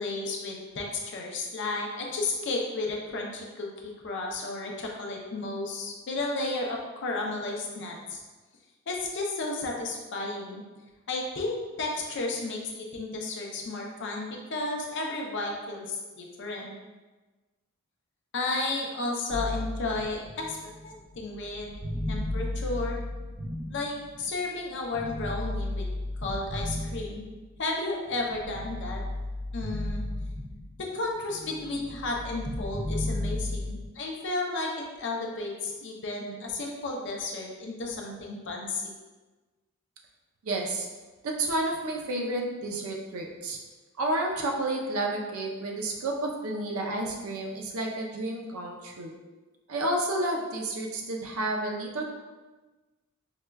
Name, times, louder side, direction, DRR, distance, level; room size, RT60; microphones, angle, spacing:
voice 1, 0.0-8.2 8.9-10.6 11.1-16.7 18.3-21.7 22.1-23.0 23.7-25.9 26.2-27.2 27.6-29.0 29.5-30.0 30.8-38.9, left 2 dB, 55° left, 0 dB, 0.5 m, -33 dB
sound 1, 19.3-24.4 24.9-27.6 28.1-30.9 31.2-33.9, left 1 dB, 20° right, 0.5 m, -34 dB
voice 2, 40.4-40.9 41.2-43.6 44.0-49.1 49.7-52.0, right 1 dB, 70° right, 0 dB, 0.5 m, -30 dB
4.8 x 2.2 x 2.2 m, 1.2 s
head